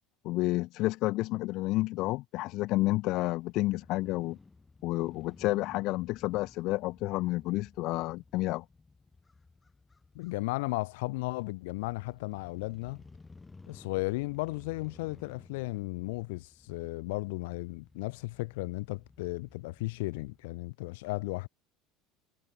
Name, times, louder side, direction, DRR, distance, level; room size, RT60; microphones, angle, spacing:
voice 1, 0.2-4.4 4.8-8.6, left 19 dB, 50° left, 0.5 m, -30 dB
Crow / Motorcycle, 2.7-20.4, left 3 dB, 10° left, 2.3 m, -57 dB
voice 2, 10.1-13.0 13.7-21.5, left 23 dB, 85° left, 3.1 m, -35 dB
cardioid pair, 155°, 0 cm